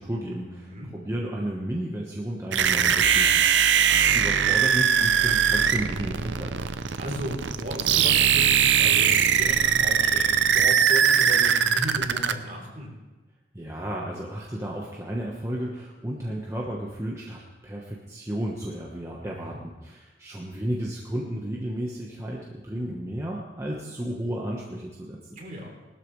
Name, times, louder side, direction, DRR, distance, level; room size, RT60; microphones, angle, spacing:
voice 1, 0.0-3.6 3.9-6.6 13.5-25.2, right 1 dB, 15° right, -3 dB, 1.2 m, -33 dB
voice 2, 0.6-0.9 4.0-4.7 7.0-12.9 19.2-19.6 25.3-25.7, equal, 45° right, -2 dB, 3.5 m, -36 dB
sound 1, 2.5-12.3, right 8 dB, 65° right, 0.6 m, -21 dB
19.5 x 12.5 x 3.2 m, 1.2 s
head